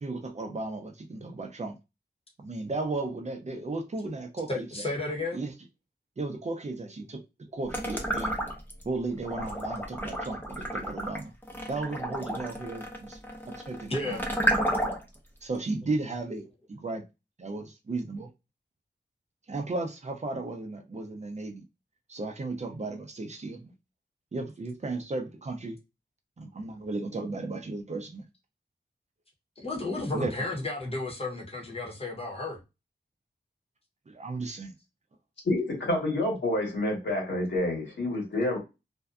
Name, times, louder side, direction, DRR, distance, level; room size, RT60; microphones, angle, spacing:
voice 1, 0.0-1.8 2.4-4.9 5.3-5.5 6.2-7.2 7.5-8.3 8.8-11.3 11.7-13.2 13.5-14.3 15.4-17.0 17.4-18.3 19.5-21.6 22.1-23.7 24.3-25.8 26.4-28.2 30.1-30.3 34.1-34.7, right 3 dB, 40° right, 0.5 m, -35 dB
voice 2, 4.5-5.5 13.9-14.2 29.6-32.6, left 2 dB, 35° left, 0.9 m, -33 dB
sound 1, 7.7-8.8 9.2-15.2, equal, 10° left, 0.6 m, -31 dB
voice 3, 35.4-38.6, left 1 dB, 85° left, 1.3 m, -28 dB
2.5 x 2.2 x 2.3 m
wide cardioid pair, 100°, 18 cm